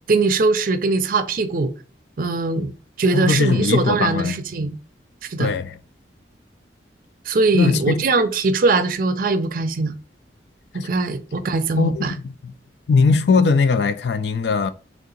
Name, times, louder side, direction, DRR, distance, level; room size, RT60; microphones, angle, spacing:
voice 1, 0.1-1.7 2.2-2.7 3.0-4.8 5.2-5.5 7.3-9.9 10.7-12.1, right 3 dB, 50° right, 0.5 m, -21 dB
voice 2, 3.1-4.4 5.4-5.7 7.5-8.1 11.8-12.0 12.4-12.5 12.9-14.7, left 4 dB, 70° left, 0.4 m, -19 dB
3.5 x 2.8 x 3.8 m
head